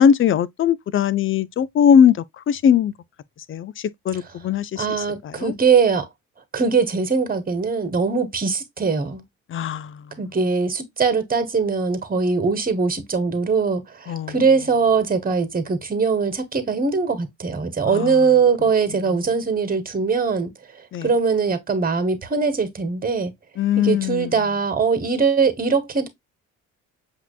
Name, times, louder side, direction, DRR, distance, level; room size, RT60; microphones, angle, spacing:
voice 1, 0.0-2.9 3.5-4.9 5.2-5.5 9.5-10.0 14.1-14.3 17.8-18.2 20.9-21.1 23.6-24.3, left 8 dB, 35° left, 0.6 m, -19 dB
voice 2, 4.7-6.1 6.5-9.2 10.2-20.5 21.0-23.3 23.8-26.1, right 5 dB, 20° right, 1.6 m, -21 dB
7.9 x 2.9 x 2.3 m
hypercardioid pair, 50°, 38 cm